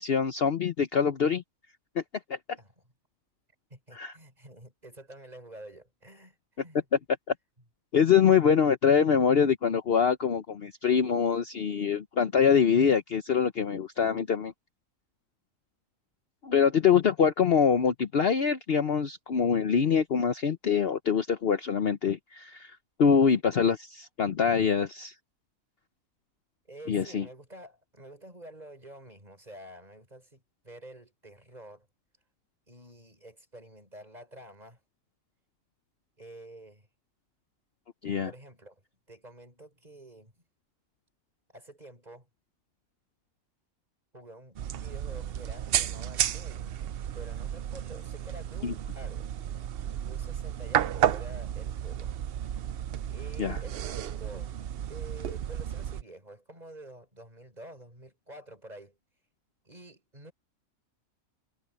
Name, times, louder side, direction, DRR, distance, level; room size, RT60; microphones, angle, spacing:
voice 1, 0.0-1.4 3.9-4.1 7.9-14.5 16.4-25.1 26.9-27.2 38.0-38.3 48.6-48.7 53.4-53.6, left 7 dB, 50° left, 0.9 m, -24 dB
voice 2, 3.7-6.8 26.7-31.9 32.7-34.8 36.2-36.9 38.2-38.8 39.1-40.4 41.5-42.3 44.1-46.8 47.1-49.3 50.0-52.1 53.1-54.5 54.9-59.0 59.6-60.3, right 1 dB, 30° right, 5.3 m, -49 dB
sound 1, 44.6-56.0, right 10 dB, 60° right, 0.6 m, -32 dB
omnidirectional pair, 1.4 m